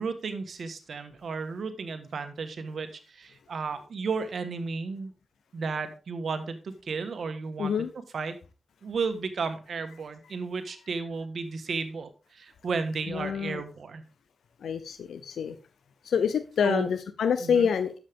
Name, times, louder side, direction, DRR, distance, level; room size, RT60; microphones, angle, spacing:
voice 1, 0.0-5.1 5.5-7.9 8.1-8.3 8.8-14.0 16.6-16.9 17.4-17.7, right 4 dB, 75° right, 1.4 m, -33 dB
voice 2, 7.6-7.9 13.1-13.6 14.6-15.6 16.0-18.0, left 7 dB, 85° left, 0.6 m, -27 dB
10.5 x 7.3 x 3.6 m
cardioid pair, 50°, 0 cm